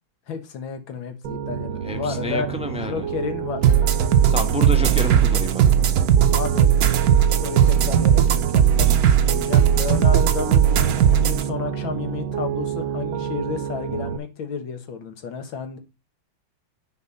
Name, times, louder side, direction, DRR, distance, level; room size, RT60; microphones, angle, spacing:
voice 1, 0.3-3.6 6.3-6.7 7.3-15.8, left 6 dB, 75° left, 7 dB, 2.2 m, -31 dB
Piano, 1.2-14.2, right 8 dB, 80° right, 1.7 m, -30 dB
voice 2, 1.8-3.1 4.3-5.6, left 1 dB, 5° right, 6 dB, 0.6 m, -29 dB
sound 1, 3.6-11.4, right 9 dB, 60° right, 1.1 m, -17 dB
9.9 x 4.6 x 5.4 m, 0.26 s
omnidirectional pair, 2.2 m